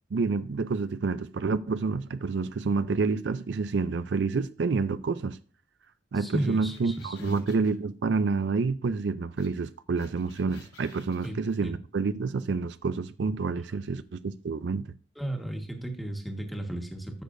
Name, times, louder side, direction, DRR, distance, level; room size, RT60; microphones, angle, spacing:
voice 1, 0.1-5.4 6.1-14.9, right 4 dB, 70° right, 0.4 m, -28 dB
voice 2, 6.1-7.4 11.2-11.8 13.7-13.8 15.1-17.2, right 1 dB, ahead, 1.4 m, -34 dB
sound 1, 6.3-7.7 9.4-9.5 9.7-11.5, left 5 dB, 90° left, 4.1 m, -55 dB
14.5 x 6.5 x 2.6 m
head